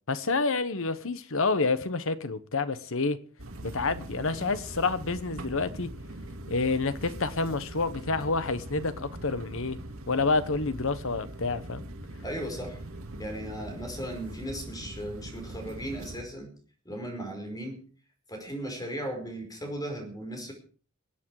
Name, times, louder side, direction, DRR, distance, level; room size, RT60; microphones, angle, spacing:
voice 1, 0.1-3.2 3.6-6.0 6.5-9.8 10.1-11.8, left 3 dB, 65° left, 1.2 m, -28 dB
sound 1, 3.4-16.2, right 1 dB, 70° right, 2.2 m, -42 dB
voice 2, 12.2-12.8 13.2-16.5 16.8-17.8 18.3-20.5, right 1 dB, 20° left, 5.0 m, -36 dB
25.0 x 8.7 x 4.9 m
head